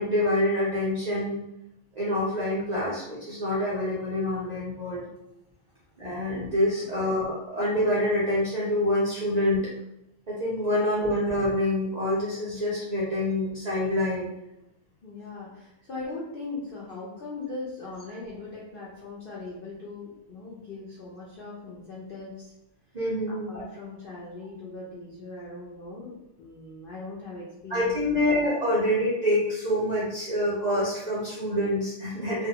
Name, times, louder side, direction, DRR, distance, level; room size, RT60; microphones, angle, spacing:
voice 1, 0.0-1.4 2.0-5.0 6.0-9.6 10.3-14.3 22.9-23.5 27.7-32.5, left 1 dB, 75° right, -7 dB, 0.3 m, -26 dB
voice 2, 6.8-7.2 15.0-22.5 23.3-28.3, left 3 dB, 75° left, -6 dB, 0.5 m, -40 dB
2.5 x 2.3 x 2.7 m, 0.85 s
omnidirectional pair, 1.6 m